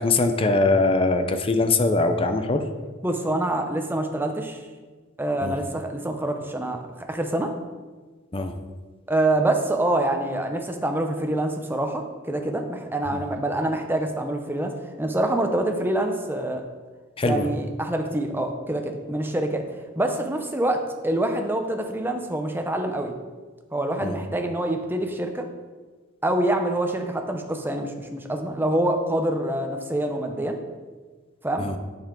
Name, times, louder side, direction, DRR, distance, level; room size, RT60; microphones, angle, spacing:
voice 1, 0.0-2.6 5.4-5.6 8.3-8.5 13.1-13.2 17.2-17.5 24.0-24.2 31.6-31.8, left 3 dB, 25° left, 7 dB, 0.6 m, -22 dB
voice 2, 3.0-4.6 5.2-7.5 9.1-14.7 15.0-16.6 17.2-19.6 20.0-23.1 23.7-25.4 26.2-30.6 31.4-31.7, right 1 dB, 10° right, 4 dB, 0.7 m, -26 dB
8.5 x 6.8 x 3.8 m, 1.4 s
head